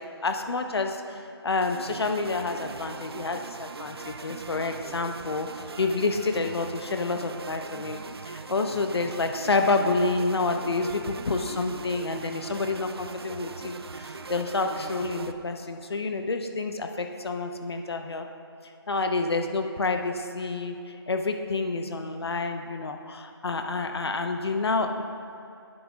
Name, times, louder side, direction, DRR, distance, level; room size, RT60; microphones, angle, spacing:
voice 1, 0.0-18.3 18.9-25.0, left 3 dB, 70° left, 5 dB, 1.0 m, -29 dB
sound 1, 1.6-15.3, right 4 dB, 65° right, 0.6 m, -41 dB
18.0 x 9.1 x 2.5 m, 2.7 s
figure-of-eight pair, 165°, 14 cm